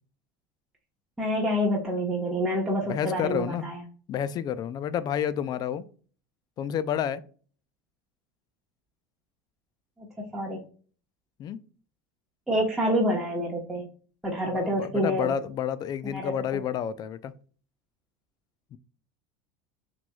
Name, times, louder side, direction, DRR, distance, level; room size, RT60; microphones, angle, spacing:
voice 1, 1.2-3.8 10.0-10.6 12.5-13.9 14.2-15.3 16.1-16.3, equal, 5° right, -5 dB, 1.2 m, -27 dB
voice 2, 2.9-3.7 4.1-5.9 6.6-7.2 11.4-11.6 14.5-17.3 18.7-18.8, left 9 dB, 40° left, 16 dB, 0.4 m, -30 dB
5.9 x 3.1 x 2.3 m, 0.42 s
supercardioid pair, 95°, 10 cm